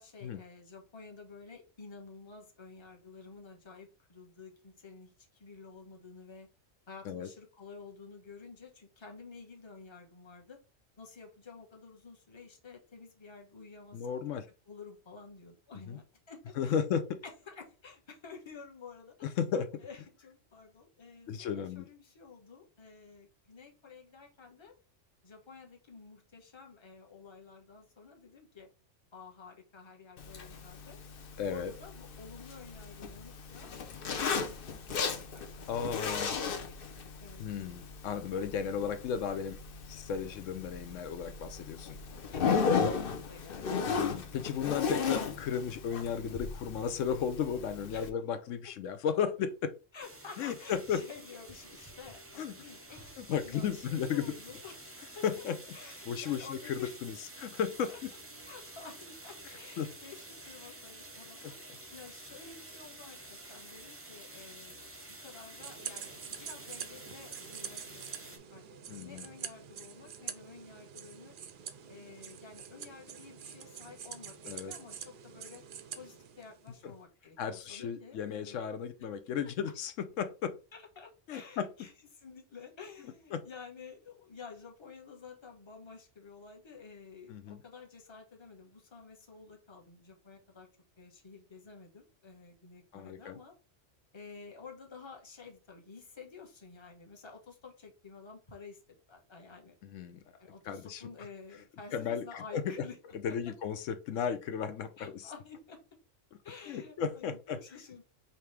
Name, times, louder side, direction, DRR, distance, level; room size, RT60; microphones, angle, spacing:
voice 1, 0.0-6.5 6.9-10.6 11.0-14.2 14.7-16.8 17.2-19.4 19.8-24.7 25.2-28.7 29.1-31.0 31.5-36.0 36.2-37.4 42.3-44.4 47.9-48.1 49.9-54.8 55.1-55.2 55.7-57.0 57.9-58.0 58.5-64.8 65.1-68.6 68.9-71.3 71.9-75.6 76.0-78.6 79.6-79.7 80.7-90.7 91.0-93.5 94.1-99.7 100.4-103.0 103.3-103.5 105.0-105.8 106.4-108.0, left 5 dB, 25° left, 2 dB, 1.0 m, -51 dB
voice 2, 13.9-14.5 15.9-16.0 16.6-17.2 19.4-19.8 21.3-21.9 31.4-31.7 35.7-36.3 37.4-39.6 39.9-42.0 43.9-49.7 50.4-51.0 52.4-52.5 53.2-54.3 55.2-55.6 56.1-58.1 59.8-59.9 61.4-61.5 68.9-69.2 74.5-74.7 77.4-80.5 81.3-81.7 83.3-83.4 87.3-87.6 92.9-93.4 99.8-100.2 100.6-101.0 101.9-102.2 102.5-102.6 103.2-105.3 106.7-107.6, left 7 dB, 85° left, 10 dB, 1.0 m, -34 dB
Zipper (clothing), 30.2-48.1, left 5 dB, 55° left, 0.8 m, -36 dB
sound 1, 50.0-68.4, right 2 dB, 15° right, 0.6 m, -50 dB
sound 2, 65.6-76.8, right 8 dB, 55° right, 0.6 m, -46 dB
5.2 x 2.9 x 3.2 m, 0.32 s
omnidirectional pair, 1.3 m